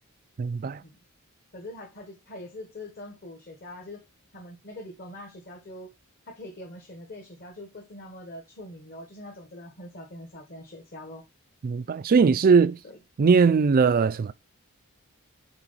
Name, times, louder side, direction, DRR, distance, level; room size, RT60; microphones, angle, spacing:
voice 1, 0.4-0.8 11.6-12.8 13.2-14.3, right 5 dB, 40° right, 0.4 m, -20 dB
voice 2, 1.5-4.0 4.3-5.9 6.3-11.2 12.8-13.0, left 1 dB, 45° left, 1.3 m, -43 dB
6.0 x 3.9 x 4.0 m
head